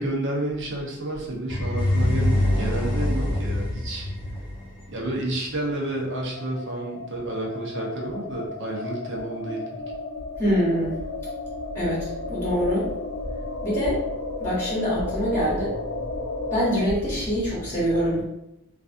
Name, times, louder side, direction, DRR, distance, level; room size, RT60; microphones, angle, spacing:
voice 1, 0.0-4.1 4.9-9.8, right 1 dB, 60° right, -1 dB, 0.7 m, -30 dB
sound 1, 1.5-5.4, left 1 dB, 45° left, 0.8 m, -25 dB
sound 2, 6.4-16.9, left 2 dB, 60° left, 0.4 m, -34 dB
voice 2, 10.4-10.9 11.7-12.9 13.6-14.0 14.4-16.1 16.5-18.2, equal, 10° left, -7 dB, 1.0 m, -24 dB
3.2 x 2.5 x 2.5 m, 0.84 s
head